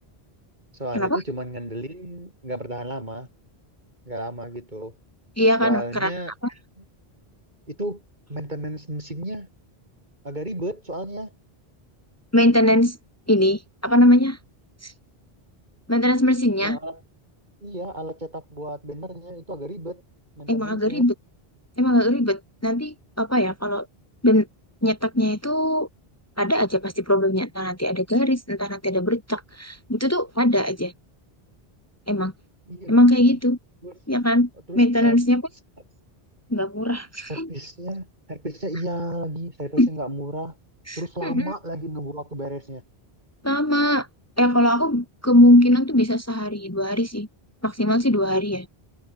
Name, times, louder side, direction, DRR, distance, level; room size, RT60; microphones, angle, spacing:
voice 1, 0.8-3.3 4.1-4.9 5.6-6.3 6.8-6.9 7.7-8.0 8.3-9.5 10.2-11.3 16.6-17.0 17.6-20.0 20.4-21.1 32.7-33.4 33.8-34.0 34.7-35.2 37.3-40.6 41.0-42.8, right 1 dB, 45° right, 7.3 m, -33 dB
voice 2, 5.4-6.1 12.3-13.0 13.3-14.4 14.8-14.9 15.9-16.8 20.5-21.1 21.8-23.9 24.2-24.5 24.8-25.9 26.4-30.9 32.1-32.3 32.9-33.6 34.1-34.5 34.8-35.4 36.5-37.5 39.8-39.9 40.9-41.4 43.4-44.1 44.4-47.3 47.6-48.7, left 1 dB, 15° left, 2.1 m, -20 dB
omnidirectional pair, 1.1 m